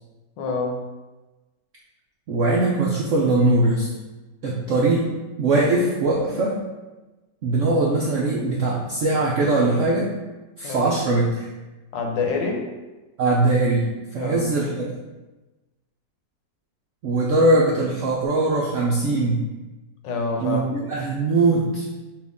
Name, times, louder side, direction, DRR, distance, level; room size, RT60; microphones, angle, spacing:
voice 1, 0.4-0.8 10.6-10.9 11.9-12.7 14.2-14.5 20.0-20.7, left 3 dB, 80° left, 2 dB, 1.4 m, -26 dB
voice 2, 2.3-3.9 4.4-5.1 5.4-6.6 7.4-10.1 10.6-11.5 13.2-14.9 17.0-19.4 20.4-21.9, right 2 dB, 75° right, -3 dB, 0.7 m, -21 dB
6.2 x 2.5 x 3.5 m, 1.1 s
omnidirectional pair, 2.0 m